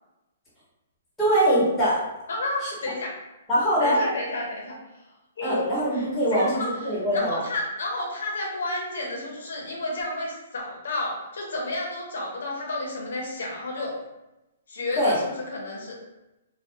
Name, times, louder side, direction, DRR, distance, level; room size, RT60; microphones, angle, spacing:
voice 1, 1.2-2.0 3.5-4.0 5.4-7.4 15.0-15.2, equal, 5° left, -11 dB, 1.0 m, -22 dB
voice 2, 2.3-3.1 3.8-5.6 5.9-14.1 14.7-16.0, left 2 dB, 75° left, -1 dB, 0.6 m, -31 dB
2.3 x 2.2 x 2.7 m, 0.96 s
hypercardioid pair, 155°, 0 cm